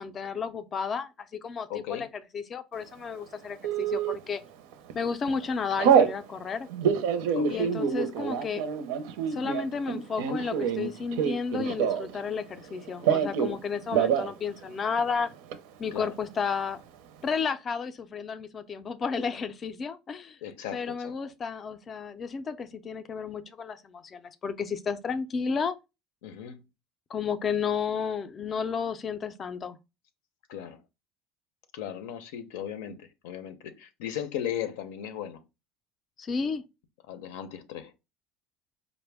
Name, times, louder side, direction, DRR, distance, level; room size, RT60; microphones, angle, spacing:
voice 1, 0.0-2.1 2.3-4.4 4.9-6.7 7.5-8.6 9.3-15.3 15.8-16.8 17.2-20.4 20.7-25.8 27.1-29.8 36.2-36.6, left 5 dB, 25° left, 0.3 m, -32 dB
voice 2, 1.7-2.1 7.3-7.7 15.9-16.1 20.4-21.1 26.2-26.6 30.5-30.8 31.7-35.4 37.1-37.9, left 10 dB, 85° left, 0.6 m, -37 dB
Telephone, 3.6-4.1 4.7-5.0 5.3-6.1 6.7-12.2 12.5-13.6 13.9-14.3 14.6-14.7 15.0-15.6, right 7 dB, 80° right, 0.6 m, -26 dB
5.0 x 2.1 x 3.3 m
cardioid pair, 170°, 0 cm